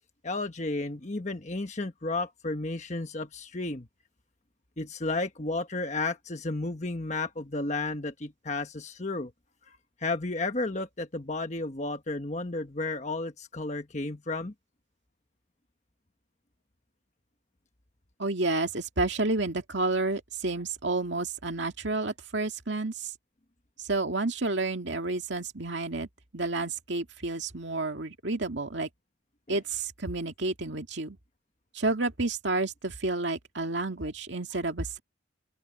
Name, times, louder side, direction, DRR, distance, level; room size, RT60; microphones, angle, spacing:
voice 1, 0.2-3.9 4.8-9.3 9.7-14.5 29.5-29.6, left 2 dB, 35° left, 1.3 m, -33 dB
voice 2, 18.2-23.1 23.8-26.1 26.3-28.9 29.5-31.2 31.7-35.0, right 2 dB, 60° right, 2.2 m, -30 dB
open air
head